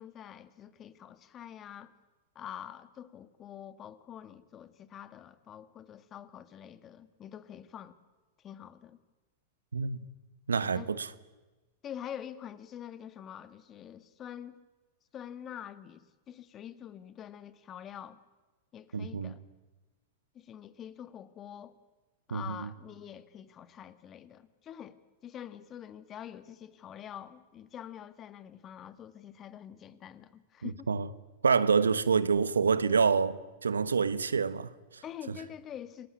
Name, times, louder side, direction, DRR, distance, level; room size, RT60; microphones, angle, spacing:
voice 1, 0.0-1.9 2.4-8.0 8.4-9.0 10.5-11.0 11.8-14.6 15.1-18.2 18.7-19.4 20.3-21.8 22.3-25.0 25.2-30.9 35.0-36.1, left 10 dB, 35° left, 1.9 m, -46 dB
voice 2, 10.5-11.1 18.9-19.3 22.3-22.7 30.6-31.1 31.4-35.0, right 5 dB, 90° right, 1.1 m, -27 dB
28.5 x 19.5 x 9.7 m
hypercardioid pair, 100°, 0 cm